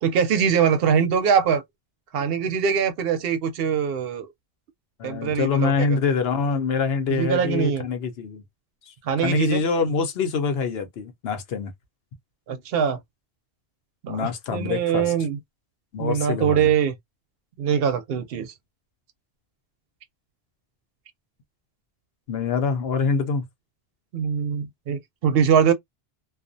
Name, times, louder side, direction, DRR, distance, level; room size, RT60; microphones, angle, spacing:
voice 1, 0.0-1.6 2.1-4.3 5.0-5.9 7.1-7.8 9.0-9.6 12.5-13.0 14.0-15.4 16.0-16.9 17.6-18.5 24.1-25.7, right 7 dB, 70° right, 0.7 m, -22 dB
voice 2, 5.0-8.4 8.9-9.0 9.2-11.7 14.1-15.1 15.9-16.7 22.3-23.4, left 5 dB, 70° left, 0.9 m, -25 dB
2.4 x 2.0 x 2.5 m
omnidirectional pair, 1.1 m